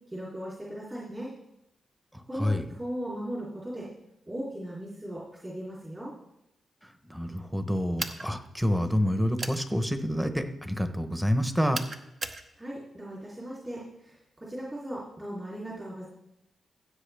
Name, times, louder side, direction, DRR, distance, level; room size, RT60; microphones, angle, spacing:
voice 1, 0.1-1.3 2.3-3.9 4.3-6.1 12.6-16.1, equal, 20° right, -6 dB, 3.2 m, -38 dB
voice 2, 2.1-2.6 6.8-11.8, equal, 5° right, 8 dB, 1.0 m, -28 dB
sound 1, 8.0-8.3 9.4-9.6 11.7-12.4, right 3 dB, 50° right, 0.9 m, -35 dB
15.5 x 8.0 x 3.5 m, 0.86 s
cardioid pair, 80°, 0 cm